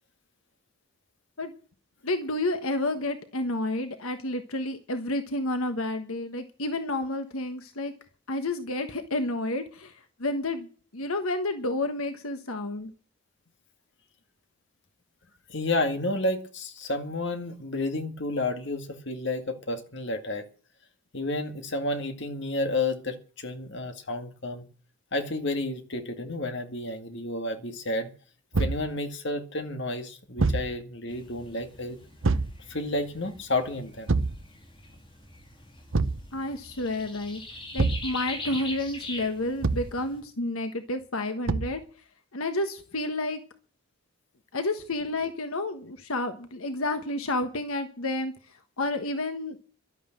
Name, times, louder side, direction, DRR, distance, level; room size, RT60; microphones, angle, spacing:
voice 1, 2.0-7.9 8.3-10.7 10.9-12.9 36.3-37.4 37.7-41.8 42.3-43.4 44.5-49.6, left 2 dB, 80° left, 1.4 m, -30 dB
voice 2, 15.5-20.4 21.1-24.7 25.1-28.1 28.6-32.0 32.7-34.1, left 2 dB, 55° left, 2.1 m, -31 dB
Thump thud, 28.5-28.9 30.4-30.7 32.2-32.6 34.1-34.4 35.9-36.3 37.8-38.1 39.6-40.0 41.5-41.8, right 3 dB, 65° right, 0.8 m, -25 dB
sound 1, 31.1-40.2, left 2 dB, 25° left, 3.1 m, -43 dB
12.0 x 9.8 x 7.7 m
head